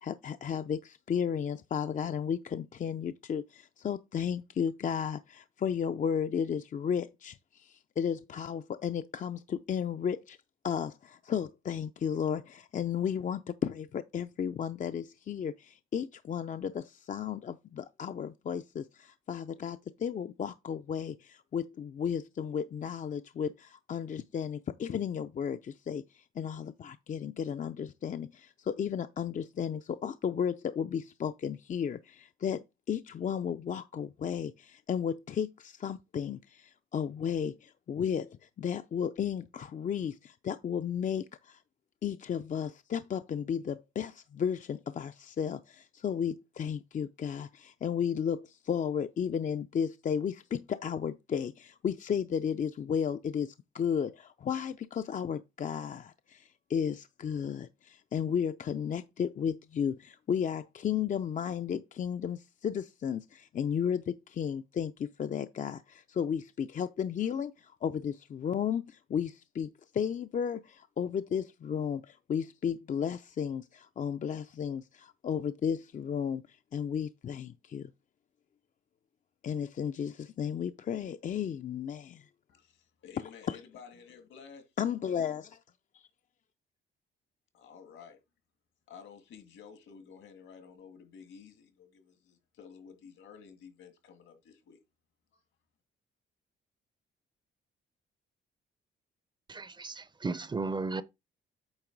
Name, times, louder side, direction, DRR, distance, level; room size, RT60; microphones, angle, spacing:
voice 1, 0.0-10.4 10.6-41.6 42.0-77.9 79.4-82.3 83.5-83.6 84.8-85.5, left 8 dB, 40° left, 0.5 m, -34 dB
voice 2, 82.5-84.7 87.5-88.2 88.9-94.8 95.3-95.4, left 6 dB, 75° left, 2.1 m, -52 dB
voice 3, 99.5-101.0, right 3 dB, 20° right, 0.5 m, -35 dB
8.8 x 3.0 x 5.9 m
cardioid pair, 90°, 20 cm